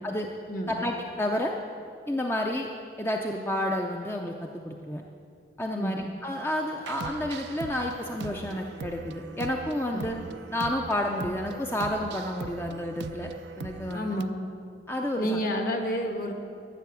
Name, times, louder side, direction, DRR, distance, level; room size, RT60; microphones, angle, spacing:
voice 1, 0.7-1.5 2.1-2.7 3.0-5.0 5.6-10.2 10.5-13.3 13.6-14.2 14.9-15.4, left 1 dB, 15° left, 1 dB, 0.5 m, -30 dB
sound 1, 6.8-14.2, right 4 dB, 70° right, 0.4 m, -40 dB
voice 2, 13.9-14.4 15.2-16.3, equal, 50° left, 3 dB, 1.4 m, -30 dB
13.5 x 6.9 x 8.2 m, 2.4 s
head